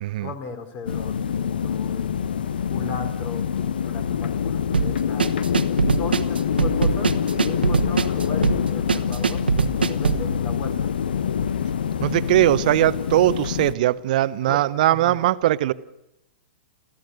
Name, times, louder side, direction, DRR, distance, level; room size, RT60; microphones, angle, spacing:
voice 1, 0.2-5.3 6.0-10.9 14.5-15.2, left 4 dB, 35° left, 3.8 m, -37 dB
sound 1, 0.9-13.7, left 8 dB, 70° left, 0.8 m, -25 dB
sound 2, 4.7-10.3, right 5 dB, 80° right, 1.3 m, -22 dB
voice 2, 12.0-15.7, right 14 dB, 55° right, 0.8 m, -20 dB
29.0 x 14.5 x 6.6 m
figure-of-eight pair, 105°, 5 cm